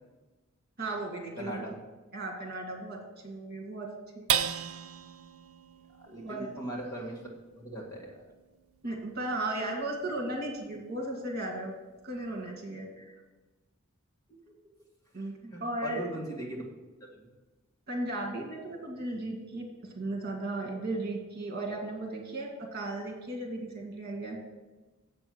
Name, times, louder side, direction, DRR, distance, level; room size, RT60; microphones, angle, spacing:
voice 1, 0.8-1.7 2.1-4.3 6.2-6.5 8.8-11.8 12.0-13.2 15.1-16.0 17.9-24.4, right 2 dB, 50° right, 0 dB, 1.9 m, -36 dB
voice 2, 1.4-1.7 6.0-7.2 7.5-8.2 14.3-14.4 15.2-16.7 17.0-17.3, right 1 dB, 15° left, -3 dB, 1.8 m, -40 dB
found spring hit, 4.3-11.0 11.5-11.6 12.0-12.5, right 8 dB, 75° right, 0.6 m, -37 dB
7.9 x 6.2 x 7.7 m, 1.2 s
head